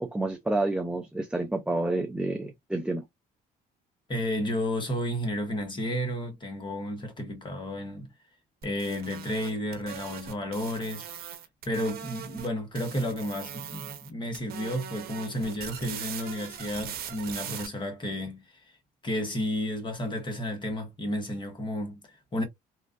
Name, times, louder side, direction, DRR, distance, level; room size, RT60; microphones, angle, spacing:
voice 1, 0.0-3.0, right 2 dB, 5° right, 0.4 m, -29 dB
voice 2, 4.1-8.1 8.6-11.1 11.6-18.6 19.0-22.4, left 1 dB, 30° left, 1.3 m, -32 dB
sound 1, 8.6-12.5 12.7-14.1 14.3-17.7, right 9 dB, 65° right, 0.9 m, -40 dB
3.1 x 2.4 x 2.4 m
cardioid pair, 110°, 17 cm